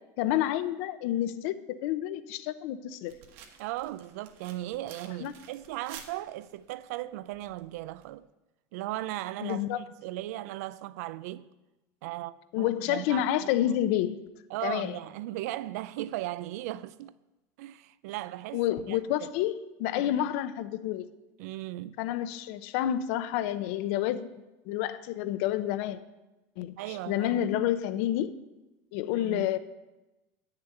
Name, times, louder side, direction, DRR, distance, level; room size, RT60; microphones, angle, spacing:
voice 1, 0.2-3.1 5.2-5.3 9.4-9.8 12.5-14.2 14.6-14.9 18.5-21.1 22.0-24.3 24.7-26.0 26.6-26.7 27.1-28.3 28.9-29.6, left 12 dB, 60° left, 0.7 m, -29 dB
sound 1, 3.1-8.1, right 7 dB, 60° right, 1.6 m, -52 dB
voice 2, 3.6-8.3 8.7-11.5 12.0-13.8 14.5-17.1 17.6-19.3 20.0-20.3 21.4-22.0 26.8-27.5 29.0-29.5, right 15 dB, 90° right, 0.4 m, -37 dB
9.7 x 6.7 x 9.0 m
cardioid pair, 170°, 8 cm